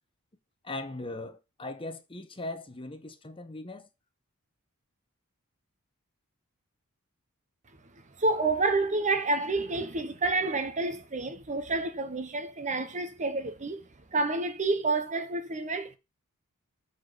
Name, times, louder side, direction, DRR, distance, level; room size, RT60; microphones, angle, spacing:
voice 1, 0.6-3.9, left 2 dB, 25° left, 0.9 m, -39 dB
voice 2, 8.2-16.0, right 3 dB, 35° right, 0.9 m, -29 dB
8.5 x 4.1 x 6.8 m
head